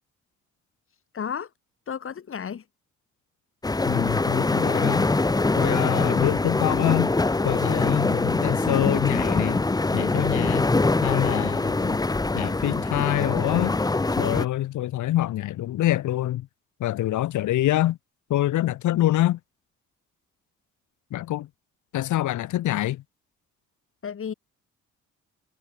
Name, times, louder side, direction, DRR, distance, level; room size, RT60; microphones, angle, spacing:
voice 1, 1.1-1.5 1.9-2.7 24.0-24.3, left 7 dB, 45° left, 2.4 m, -32 dB
sound 1, 3.6-14.5, left 2 dB, 15° left, 0.9 m, -24 dB
voice 2, 3.9-5.1 5.6-7.1 7.4-9.6 9.9-10.7 11.0-12.0 12.3-13.8 14.2-16.5 16.8-18.0 18.3-19.4 21.1-21.5 21.9-23.0, left 14 dB, 80° left, 1.7 m, -25 dB
cardioid pair, 90°, 30 cm